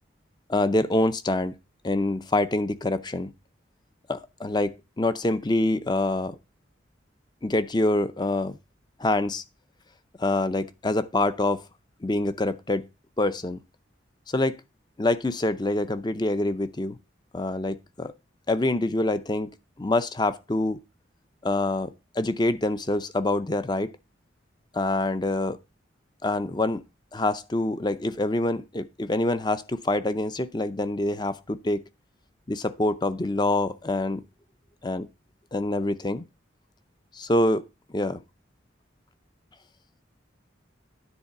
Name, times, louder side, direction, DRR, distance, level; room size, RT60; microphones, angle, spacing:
voice 1, 0.5-1.5 1.8-3.3 4.1-6.4 7.4-8.6 9.0-9.4 10.2-11.6 12.0-12.9 13.2-13.6 14.3-14.6 15.0-17.0 17.3-18.1 18.5-19.5 19.8-20.8 21.4-23.9 24.7-25.6 26.2-26.8 27.1-31.8 32.5-34.2 34.8-35.1 35.5-36.3 37.1-37.6 37.9-38.2, left 2 dB, 20° left, 0.6 m, -26 dB
9.9 x 3.9 x 6.6 m
head